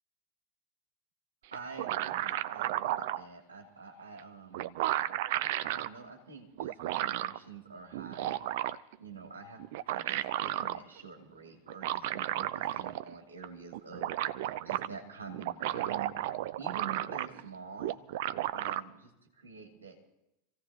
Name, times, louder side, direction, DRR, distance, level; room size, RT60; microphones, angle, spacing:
sound 1, 1.5-3.2 4.2-4.3 4.5-5.9 6.6-7.4 7.9-8.9 9.6-10.8 11.7-13.1 13.4-13.5 13.7-14.9 15.3-17.5 17.8-18.8, right 14 dB, 55° right, 0.4 m, -33 dB
voice 1, 1.5-4.8 5.6-8.5 9.0-14.1 14.6-16.1 16.6-18.0 18.5-20.0, right 5 dB, 75° right, 1 dB, 2.4 m, -47 dB
26.0 x 16.0 x 2.8 m, 0.87 s
figure-of-eight pair, 85°, 0 cm